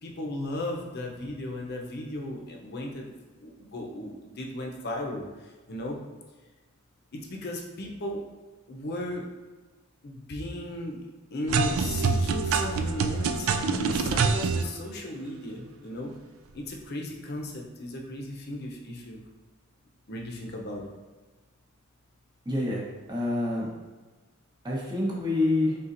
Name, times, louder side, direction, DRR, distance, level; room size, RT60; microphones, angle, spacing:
voice 1, 0.0-3.1 3.4-5.2 5.7-6.0 7.1-8.2 8.7-9.2 10.0-11.0 11.3-16.1 16.5-19.2 20.1-20.9, left 1 dB, 50° left, 0 dB, 0.6 m, -36 dB
sound 1, 11.5-14.6, right 4 dB, 85° right, 0.3 m, -25 dB
voice 2, 22.4-22.8 23.1-23.7 24.6-25.8, left 2 dB, 20° right, -4 dB, 0.9 m, -27 dB
4.2 x 3.8 x 2.5 m, 1.3 s
head